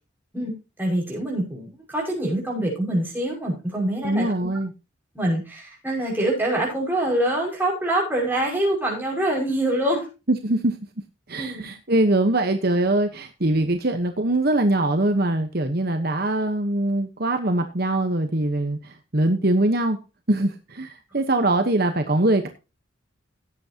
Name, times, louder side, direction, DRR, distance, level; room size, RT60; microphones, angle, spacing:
voice 1, 0.8-4.3 5.1-10.0 11.4-11.6, right 1 dB, 10° right, -1 dB, 6.0 m, -25 dB
voice 2, 4.0-4.7 10.3-10.8 11.3-20.0 20.3-22.5, right 1 dB, 50° right, 6 dB, 1.2 m, -22 dB
17.0 x 8.3 x 2.9 m, 0.29 s
head